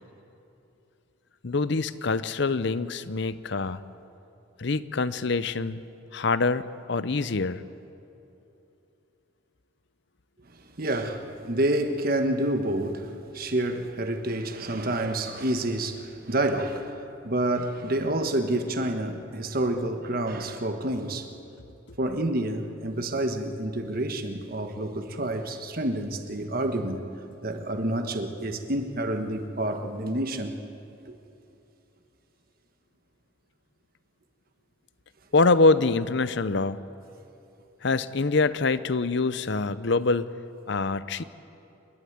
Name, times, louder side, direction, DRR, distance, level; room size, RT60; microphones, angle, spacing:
voice 1, 1.4-3.8 4.6-5.8 6.1-7.6 35.3-36.8 37.8-40.3 40.7-41.2, left 3 dB, 60° left, 0.7 m, -25 dB
voice 2, 10.8-17.0 17.2-21.3 22.0-27.1 27.4-30.5 31.1-31.2, right 1 dB, 45° right, 1.4 m, -28 dB
28.5 x 12.0 x 9.5 m
head